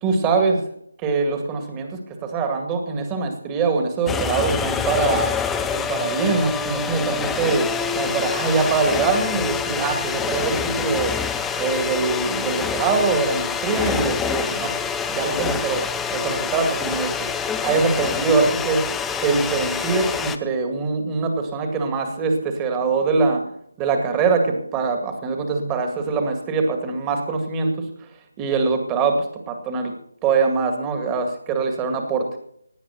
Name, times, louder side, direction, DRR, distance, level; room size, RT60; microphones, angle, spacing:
voice 1, 0.0-0.6 1.0-5.3 5.7-11.1 11.6-14.8 15.1-17.2 17.6-18.8 19.2-23.5 23.8-27.9 28.4-29.9 30.2-32.3, right 4 dB, 15° right, 5 dB, 2.1 m, -23 dB
sound 1, 4.1-20.4, left 6 dB, 5° left, 0.6 m, -26 dB
17.5 x 10.0 x 5.9 m, 0.68 s
figure-of-eight pair, 155°, 0 cm